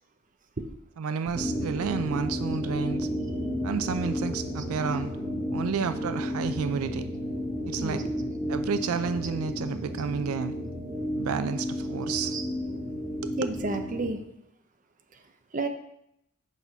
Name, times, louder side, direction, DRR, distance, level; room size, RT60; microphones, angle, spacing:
voice 1, 1.0-3.1 3.6-5.1 5.5-7.1 7.6-8.0 8.5-10.5 11.1-12.4 13.2-13.5, right 6 dB, 85° right, 11 dB, 0.4 m, -31 dB
sound 1, 1.3-14.1, equal, 15° right, 1.7 m, -32 dB
voice 2, 7.8-8.1 12.3-12.4 13.4-14.2 15.5-15.7, right 3 dB, 40° right, 6 dB, 0.8 m, -31 dB
8.3 x 5.5 x 4.5 m, 0.78 s
head